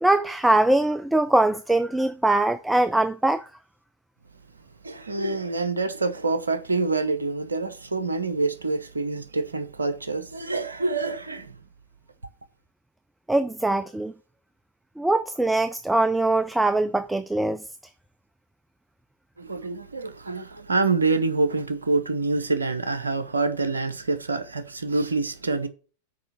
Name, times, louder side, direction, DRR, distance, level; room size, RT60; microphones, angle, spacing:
voice 1, 0.0-3.5 13.3-14.1 15.0-17.6, right 2 dB, 5° right, 0.4 m, -22 dB
voice 2, 4.8-11.5 19.4-25.7, right 3 dB, 75° right, 0.8 m, -26 dB
6.6 x 4.9 x 6.8 m
figure-of-eight pair, 90°, 0 cm